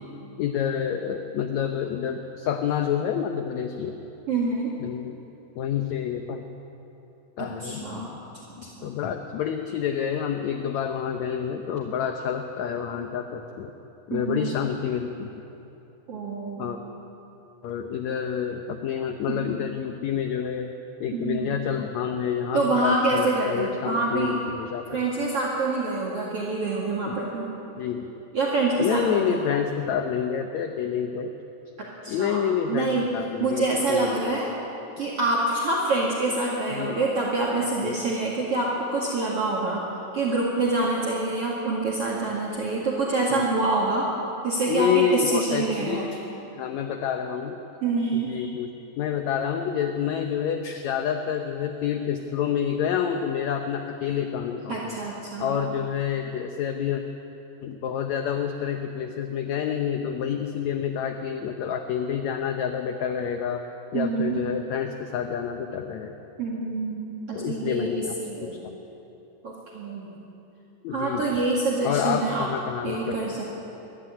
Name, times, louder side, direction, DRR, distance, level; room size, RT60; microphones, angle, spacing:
voice 1, 0.4-4.0 4.8-5.2 5.6-6.4 7.4-8.2 8.6-13.7 14.1-15.3 16.6-16.8 17.6-20.7 21.0-25.0 27.0-27.1 27.8-28.0 28.8-31.3 32.1-34.4 36.7-37.0 37.8-38.0 43.3-43.4 44.7-46.3 46.5-47.6 48.1-48.7 49.0-55.0 55.4-57.0 57.6-63.6 63.9-66.1 67.3-68.2 68.4-68.7 70.8-71.4 71.8-73.2, left 8 dB, 70° left, 5 dB, 1.8 m, -28 dB
voice 2, 4.3-4.7 7.4-8.2 8.5-8.9 14.1-14.6 16.1-16.7 19.3-19.6 21.1-21.7 22.5-24.4 24.9-27.5 28.3-29.4 31.8-32.4 32.7-33.1 33.4-34.5 35.0-39.8 40.1-44.1 44.4-46.1 47.8-48.5 54.7-55.6 63.9-64.4 66.4-68.6 69.4-70.1 70.9-72.5 72.8-73.4, right 3 dB, 45° right, -5 dB, 2.8 m, -26 dB
21.5 x 13.0 x 9.9 m, 3.0 s
omnidirectional pair, 4.1 m